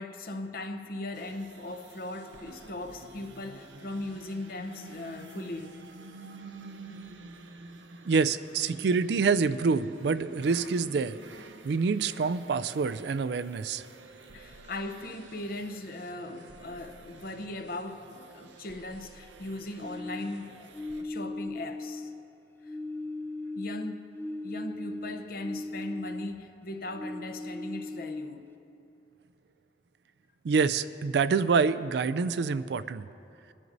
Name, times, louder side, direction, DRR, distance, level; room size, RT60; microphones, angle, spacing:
voice 1, 0.0-5.8 8.7-8.8 14.3-22.1 22.7-22.8 23.6-24.1 24.4-28.5, left 2 dB, 55° left, 0.7 m, -39 dB
sound 1, 1.1-21.0, right 3 dB, 90° right, 0.7 m, -49 dB
voice 2, 8.1-11.2 11.6-13.8 30.4-33.0, right 5 dB, 65° right, 0.4 m, -26 dB
sound 2, 19.8-22.3 22.6-26.5 26.9-28.5, left 2 dB, 10° left, 0.4 m, -38 dB
22.5 x 11.0 x 2.6 m
head